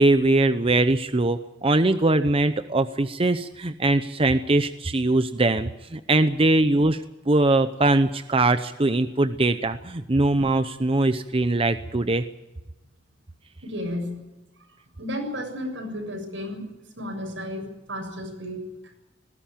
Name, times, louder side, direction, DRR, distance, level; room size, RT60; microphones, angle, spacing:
voice 1, 0.0-12.2, right 2 dB, 30° right, 10 dB, 0.8 m, -21 dB
voice 2, 13.6-14.2 14.7-16.7 17.0-19.0, left 1 dB, 85° right, 3 dB, 7.1 m, -33 dB
19.5 x 16.5 x 9.0 m, 1.0 s
head